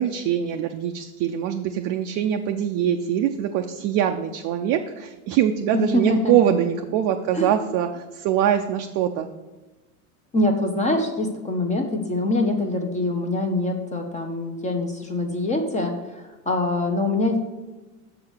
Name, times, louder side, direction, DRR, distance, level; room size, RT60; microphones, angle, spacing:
voice 1, 0.0-9.3, right 10 dB, 40° right, 5 dB, 0.5 m, -23 dB
voice 2, 5.7-6.3 7.3-7.5 10.3-17.4, left 2 dB, 15° left, 3 dB, 0.7 m, -24 dB
6.4 x 4.8 x 6.3 m, 1.2 s
supercardioid pair, 115°, 44 cm